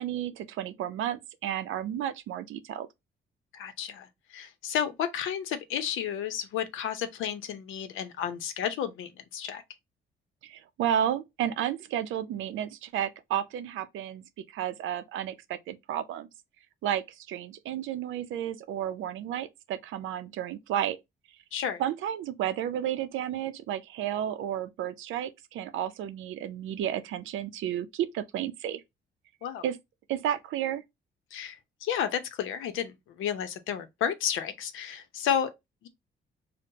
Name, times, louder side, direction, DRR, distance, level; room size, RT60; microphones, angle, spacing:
voice 1, 0.0-2.9 10.4-14.2 14.5-16.3 16.8-21.0 21.8-28.8 29.6-29.8 30.1-30.8, right 10 dB, 80° right, 0.5 m, -32 dB
voice 2, 3.5-9.6 21.5-21.8 29.4-29.6 31.3-35.5 35.8-35.9, left 9 dB, 85° left, 0.7 m, -32 dB
5.1 x 2.1 x 2.7 m
cardioid pair, 90°, 20 cm